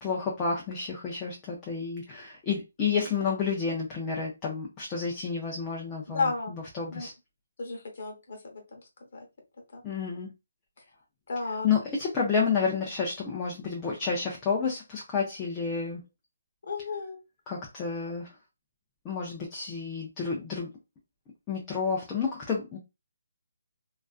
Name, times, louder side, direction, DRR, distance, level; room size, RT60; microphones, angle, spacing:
voice 1, 0.0-7.1 9.8-10.3 11.6-16.0 17.5-18.3 19.0-20.7 21.5-22.8, left 5 dB, 15° left, -3 dB, 0.4 m, -30 dB
voice 2, 6.1-6.5 6.9-7.1 7.6-8.8 9.1-9.2 9.7-9.8 11.3-11.7 16.6-17.2, left 3 dB, 50° left, 1 dB, 0.8 m, -33 dB
2.3 x 2.3 x 2.3 m, 0.25 s
hypercardioid pair, 170°, 0 cm